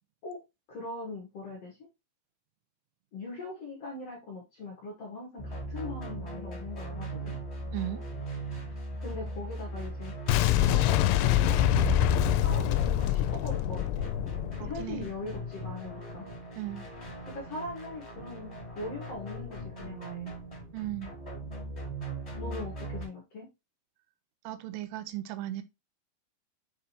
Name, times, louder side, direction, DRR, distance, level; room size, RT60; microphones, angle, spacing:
voice 1, 0.7-1.8 3.1-7.4 9.0-10.1 10.5-11.6 12.2-14.1 14.6-16.3 17.3-20.3 22.4-23.5, left 2 dB, 50° left, 1.9 m, -41 dB
sound 1, 5.4-23.1, right 1 dB, 10° left, 3.2 m, -38 dB
voice 2, 7.7-8.1 14.6-15.1 16.6-16.9 20.7-21.1 24.5-25.6, right 14 dB, 90° right, 3.4 m, -36 dB
Boom, 10.3-15.2, left 13 dB, 85° left, 2.9 m, -26 dB
7.7 x 5.0 x 2.9 m
omnidirectional pair, 5.6 m